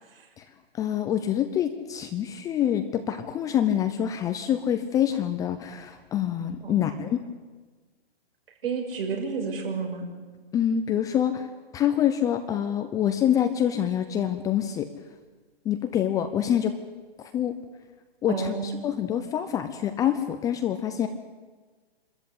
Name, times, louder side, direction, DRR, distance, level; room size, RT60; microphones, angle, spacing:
voice 1, 0.8-7.2 10.5-11.5 11.7-14.9 15.6-16.7 17.3-17.5 18.2-21.1, left 10 dB, 10° left, 8 dB, 0.6 m, -26 dB
voice 2, 6.6-7.0 8.6-10.1 18.3-18.9, right 5 dB, 65° right, 1 dB, 6.2 m, -31 dB
26.5 x 13.5 x 8.5 m, 1.4 s
hypercardioid pair, 140°, 31 cm